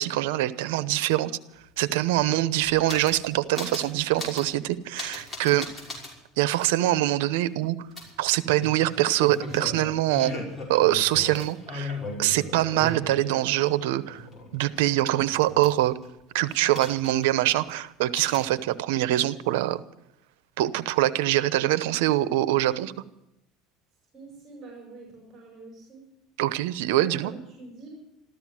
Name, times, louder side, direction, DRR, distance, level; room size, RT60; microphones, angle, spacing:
voice 1, 0.0-1.4 1.8-5.7 6.4-7.8 8.2-10.3 10.7-14.2 14.5-16.0 16.3-19.8 20.6-22.9 26.4-27.3, right 15 dB, 90° right, 15 dB, 0.9 m, -24 dB
sound 1, 1.6-1.7 1.9-3.3 3.6-3.9 4.2-4.5 5.0-6.1 6.6-6.7 8.0-13.7 14.0-16.0 16.5-17.4 17.6-17.7 18.1-18.5, left 2 dB, 25° left, 5.9 m, -38 dB
voice 2, 24.1-26.0 27.0-27.9, right 3 dB, 30° right, -1 dB, 5.4 m, -45 dB
14.0 x 13.5 x 7.5 m, 0.86 s
supercardioid pair, 125°, 0 cm